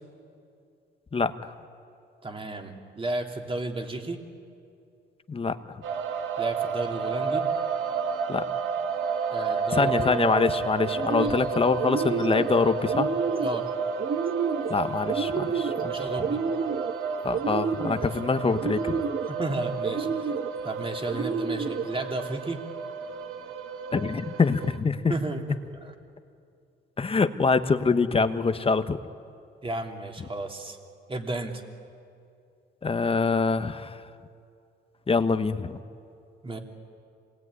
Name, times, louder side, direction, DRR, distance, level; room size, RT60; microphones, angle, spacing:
voice 1, 1.1-1.5 5.3-5.8 8.3-8.4 9.7-13.1 14.7-16.1 17.2-19.0 23.9-25.2 27.0-29.0 32.8-34.1 35.1-35.8, left 4 dB, 30° left, 10 dB, 1.2 m, -25 dB
voice 2, 2.2-4.2 6.4-7.5 9.3-10.2 11.2-11.4 13.4-13.7 15.8-16.4 19.4-20.3 20.6-22.6 25.1-25.4 25.8-25.9 29.6-30.8 31.1-31.6 36.4-36.6, right 2 dB, 25° right, 4 dB, 2.8 m, -33 dB
sound 1, 5.8-24.8, right 5 dB, 85° right, 1.6 m, -31 dB
sound 2, 9.9-10.4 10.8-11.5 11.8-12.5 12.9-13.6 14.0-14.7 15.1-15.9 16.2-16.9 17.3-18.1 18.5-19.3 19.8-20.5 21.1-21.9, right 6 dB, 45° right, 1.2 m, -30 dB
27.0 x 19.5 x 9.6 m, 2.5 s
cardioid pair, 90°, 20 cm